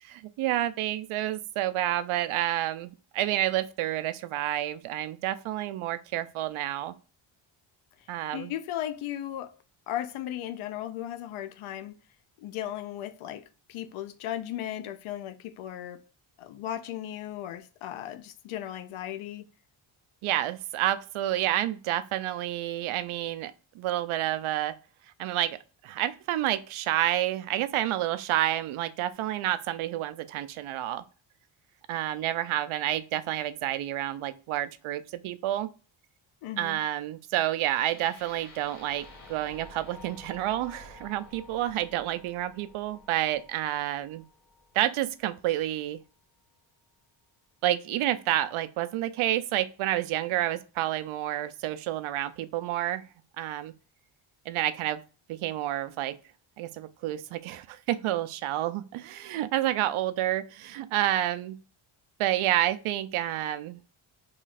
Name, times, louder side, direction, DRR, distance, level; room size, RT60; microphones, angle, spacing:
voice 1, 0.0-6.9 8.1-8.5 20.2-24.8 25.2-25.6 25.8-31.0 31.9-35.7 36.6-44.2 44.7-46.0 47.6-53.1 53.4-53.7 54.5-55.0 55.3-56.2 56.6-61.6 62.2-63.8, right 13 dB, 80° right, 0.5 m, -29 dB
voice 2, 8.3-9.6 9.9-12.0 12.4-16.0 16.4-19.5 36.4-36.8, left 12 dB, 85° left, 0.6 m, -36 dB
sound 1, 37.6-45.6, left 2 dB, 40° left, 1.0 m, -51 dB
3.1 x 2.4 x 4.0 m
cardioid pair, 145°, 48 cm